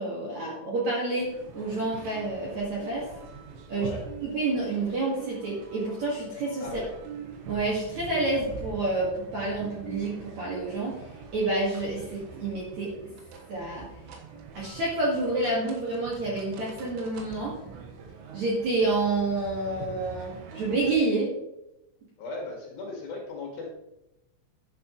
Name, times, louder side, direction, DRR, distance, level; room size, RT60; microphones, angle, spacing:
voice 1, 0.0-3.1 3.7-3.9 4.2-6.7 7.5-11.0 11.3-12.9 13.5-13.9 14.5-17.6 18.3-21.3, right 2 dB, 50° right, -5 dB, 2.4 m, -28 dB
sound 1, 1.2-21.0, right 5 dB, 85° right, 3.9 m, -44 dB
voice 2, 3.7-4.0 6.6-7.0 22.2-23.7, left 3 dB, 60° left, -1 dB, 3.1 m, -37 dB
11.0 x 10.0 x 3.1 m, 0.90 s
omnidirectional pair, 5.6 m